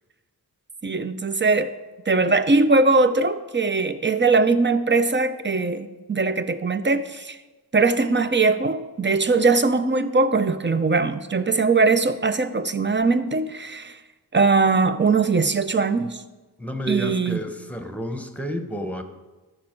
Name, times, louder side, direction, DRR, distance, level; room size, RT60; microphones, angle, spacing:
voice 1, 0.8-1.7 2.1-7.4 7.7-14.0 14.3-16.2 16.9-17.4, right 3 dB, 30° right, 11 dB, 0.7 m, -21 dB
voice 2, 16.6-19.0, equal, 5° left, 7 dB, 1.1 m, -30 dB
14.0 x 6.6 x 4.6 m, 1.2 s
wide cardioid pair, 65°, 41 cm